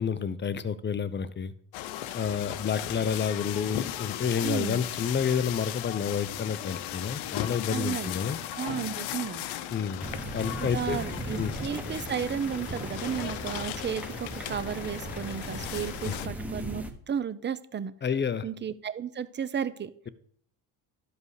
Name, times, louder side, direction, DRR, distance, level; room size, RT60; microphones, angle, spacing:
voice 1, 0.0-1.5 2.1-8.4 9.7-10.1 10.3-11.0 11.4-11.5 16.0-16.3 18.0-18.5, left 7 dB, 25° left, 14 dB, 0.6 m, -29 dB
sound 1, 1.7-16.3, left 13 dB, 80° left, 0.8 m, -37 dB
voice 2, 4.4-4.8 7.7-8.2 8.5-9.5 10.6-17.9 18.4-19.9, right 8 dB, 25° right, 14 dB, 0.6 m, -33 dB
sound 2, 10.0-16.9, right 1 dB, 5° right, 1.2 m, -38 dB
13.0 x 5.3 x 4.8 m, 0.62 s
cardioid pair, 110°, 46 cm